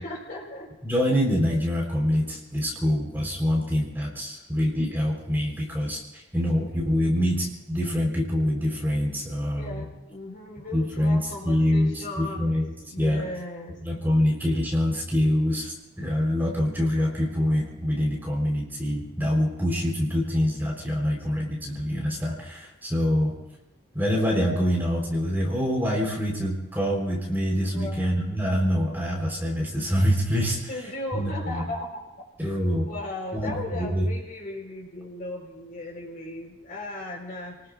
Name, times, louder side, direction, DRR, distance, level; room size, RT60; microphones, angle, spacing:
voice 1, 0.0-0.7 9.6-12.6 12.8-13.8 18.2-18.5 27.7-28.1 30.7-32.0 32.9-37.5, left 2 dB, 40° left, -1 dB, 4.3 m, -37 dB
voice 2, 0.8-9.8 10.7-12.7 13.0-13.2 13.8-23.3 23.9-30.6 31.1-31.6 32.4-32.9 33.3-34.1, equal, 10° right, -2 dB, 3.9 m, -25 dB
30.0 x 19.5 x 2.5 m, 0.93 s
head